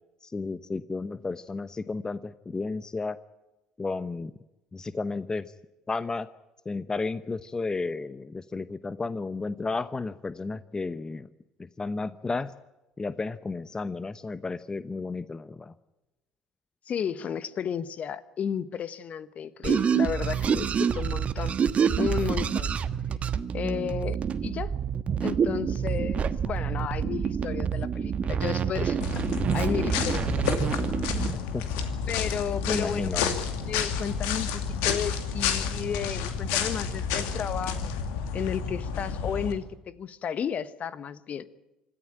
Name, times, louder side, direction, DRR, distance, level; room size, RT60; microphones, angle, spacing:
voice 1, 0.2-3.2 3.8-4.3 4.7-5.5 5.9-6.3 6.6-11.3 11.6-12.5 13.0-15.7 23.6-23.9 31.3-31.8 32.7-33.4, left 3 dB, 20° left, 0.9 m, -33 dB
voice 2, 16.9-21.6 22.0-22.7 23.5-24.8 25.2-29.2 29.5-30.6 32.1-33.1 33.7-38.0 38.3-41.5, left 8 dB, 45° left, 1.2 m, -33 dB
sound 1, 19.6-31.3, right 7 dB, 40° right, 1.3 m, -27 dB
sound 2, 29.0-39.5, left 6 dB, 70° left, 2.5 m, -30 dB
26.5 x 14.5 x 8.9 m
hypercardioid pair, 60°, 3 cm